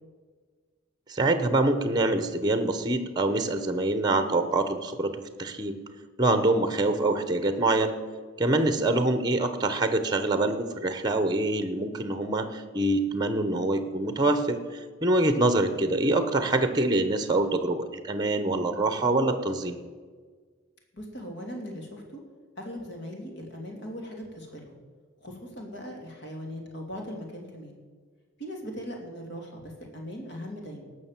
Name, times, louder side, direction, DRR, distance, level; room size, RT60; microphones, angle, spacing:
voice 1, 1.1-5.8 6.2-7.9 8.4-19.8, right 2 dB, 20° right, 10 dB, 0.8 m, -25 dB
voice 2, 18.7-19.1 20.9-22.2 22.6-24.8 25.2-27.8 28.4-30.9, equal, 60° left, 1 dB, 2.8 m, -39 dB
18.0 x 6.4 x 7.5 m, 1.5 s
head